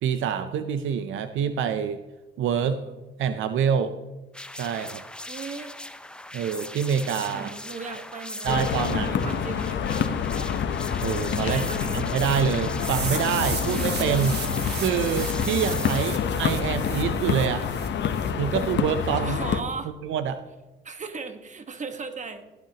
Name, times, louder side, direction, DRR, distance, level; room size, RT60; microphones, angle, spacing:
voice 1, 0.0-2.0 2.4-2.8 3.2-3.9 4.6-5.0 6.3-7.5 8.4-9.1 11.0-11.7 11.9-14.4 14.7-17.7 18.4-19.4 20.0-20.4, right 8 dB, 80° right, 10 dB, 0.6 m, -26 dB
voice 2, 2.5-2.9 5.3-5.7 7.3-10.3 11.4-12.0 19.1-19.9 20.8-22.5, right 4 dB, 35° right, 7 dB, 1.4 m, -37 dB
sound 1, 4.3-16.1, left 1 dB, 5° left, 0.6 m, -38 dB
sound 2, 8.5-19.6, left 7 dB, 65° left, 0.9 m, -27 dB
sound 3, 12.8-18.7, right 5 dB, 55° right, 2.1 m, -37 dB
16.5 x 9.3 x 2.9 m, 1.1 s
cardioid pair, 90°, 20 cm